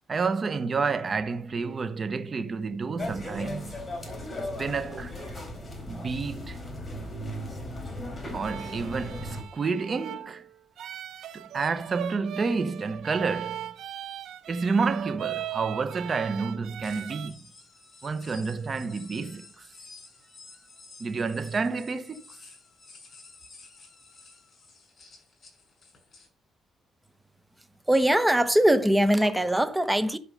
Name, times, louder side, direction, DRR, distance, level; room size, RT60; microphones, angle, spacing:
voice 1, 0.1-3.8 4.6-5.1 5.9-6.6 8.3-10.5 11.3-13.7 14.5-17.4 18.0-19.7 21.0-22.2, right 4 dB, 40° right, 1.2 m, -29 dB
sound 1, 3.0-9.4, left 1 dB, 20° left, 4.0 m, -37 dB
sound 2, 8.4-17.3, right 11 dB, 75° right, 0.8 m, -39 dB
sound 3, 16.8-26.3, left 3 dB, 40° left, 6.3 m, -51 dB
voice 2, 27.9-30.2, right 1 dB, 10° right, 1.1 m, -21 dB
11.5 x 5.0 x 5.3 m
cardioid pair, 90°, 0 cm